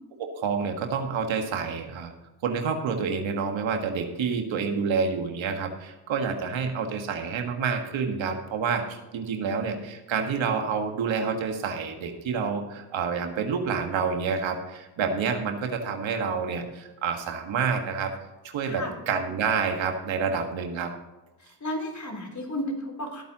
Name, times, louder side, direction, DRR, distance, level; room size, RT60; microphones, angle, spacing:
voice 1, 0.2-2.1 2.4-18.1 18.5-20.9, right 5 dB, 75° right, 4 dB, 1.7 m, -28 dB
voice 2, 18.6-19.0 21.6-23.2, left 1 dB, 35° left, 2 dB, 3.8 m, -33 dB
16.0 x 8.5 x 3.0 m, 1.1 s
supercardioid pair, 50°, 47 cm